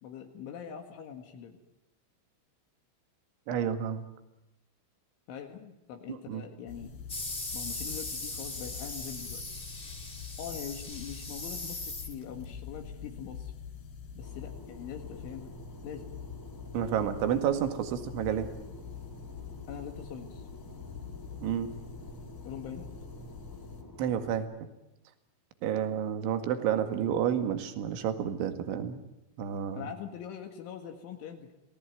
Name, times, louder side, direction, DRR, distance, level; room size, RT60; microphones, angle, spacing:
voice 1, 0.0-1.6 5.3-6.9 7.5-9.4 10.4-13.5 14.1-15.5 15.8-16.1 19.7-20.5 22.4-22.9 29.7-31.5, left 8 dB, 75° left, 4 dB, 4.2 m, -43 dB
voice 2, 3.5-4.0 6.1-6.4 16.7-18.5 21.4-21.7 24.0-24.7 25.6-29.0 29.4-29.8, right 9 dB, 70° right, 8 dB, 4.2 m, -30 dB
sound 1, 6.7-23.8, left 6 dB, 50° left, 3.0 m, -45 dB
sound 2, 7.1-12.4, left 2 dB, 30° left, 1.0 m, -39 dB
Fixed-wing aircraft airplane, 14.2-24.4, left 1 dB, 5° left, 3.5 m, -50 dB
27.5 x 18.5 x 9.2 m, 0.93 s
omnidirectional pair, 5.8 m